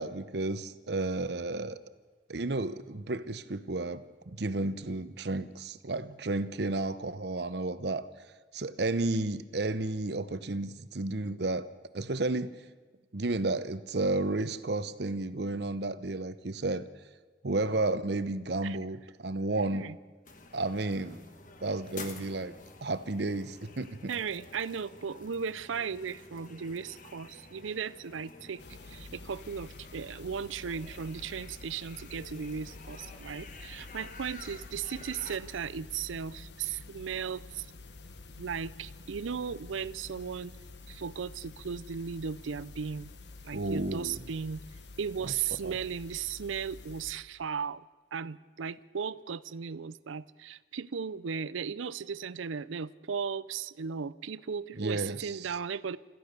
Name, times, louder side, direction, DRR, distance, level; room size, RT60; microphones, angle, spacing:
voice 1, 0.0-1.8 2.3-8.0 8.5-11.7 11.9-12.5 13.1-16.9 17.4-19.8 20.5-21.2 21.6-22.5 22.8-24.1 43.5-44.2 45.6-45.8 54.7-55.5, right 2 dB, 60° right, 13 dB, 0.8 m, -32 dB
sound 1, 20.2-35.4, left 3 dB, 40° left, 1.5 m, -50 dB
voice 2, 24.1-28.6 28.9-37.7 38.4-40.5 40.9-43.1 43.4-44.6 45.0-47.8 48.1-56.0, right 6 dB, 90° right, 18 dB, 0.5 m, -36 dB
sound 2, 28.6-47.1, left 3 dB, 65° left, 1.2 m, -49 dB
27.5 x 14.0 x 6.7 m, 1.4 s
head